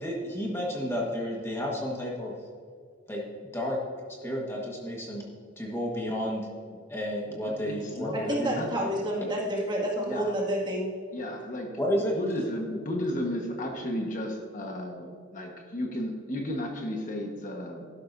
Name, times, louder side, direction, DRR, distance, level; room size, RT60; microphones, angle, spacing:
voice 1, 0.0-2.3 3.1-3.2 3.5-3.8 4.2-5.2 5.6-6.5 6.9-8.5 11.8-12.1, equal, 15° left, -2 dB, 1.4 m, -31 dB
voice 2, 7.3-8.7 10.0-10.3 11.1-11.8 12.1-17.9, left 1 dB, 40° left, 2 dB, 1.3 m, -34 dB
voice 3, 8.1-10.9, right 1 dB, 25° right, -3 dB, 2.1 m, -29 dB
12.5 x 11.5 x 2.6 m, 2.2 s
head